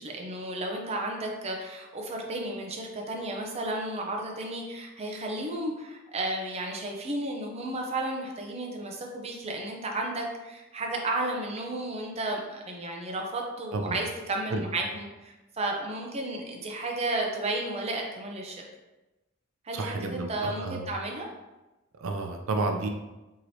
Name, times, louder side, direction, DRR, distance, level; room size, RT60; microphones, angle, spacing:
voice 1, 0.0-18.6 19.6-21.3, right 2 dB, 30° right, 0 dB, 0.6 m, -33 dB
voice 2, 19.7-20.8 22.0-22.9, right 3 dB, 85° right, 4 dB, 0.4 m, -31 dB
4.7 x 3.0 x 2.7 m, 1.1 s
head